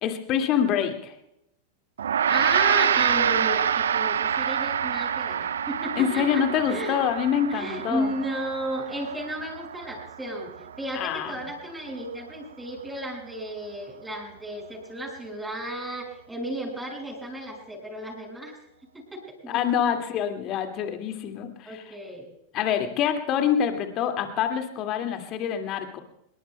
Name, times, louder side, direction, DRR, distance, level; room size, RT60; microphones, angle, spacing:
voice 1, 0.0-1.1 6.0-8.1 11.0-11.3 19.5-21.8 22.5-26.0, left 8 dB, 35° left, 6 dB, 2.2 m, -26 dB
Gong, 2.0-11.5, right 8 dB, 65° right, 0.5 m, -27 dB
voice 2, 2.3-7.0 7.5-10.5 10.8-18.6 18.9-19.6 21.6-22.3, right 1 dB, 5° right, 1 dB, 6.4 m, -33 dB
26.0 x 21.5 x 2.3 m, 0.81 s
figure-of-eight pair, 90°, 0 cm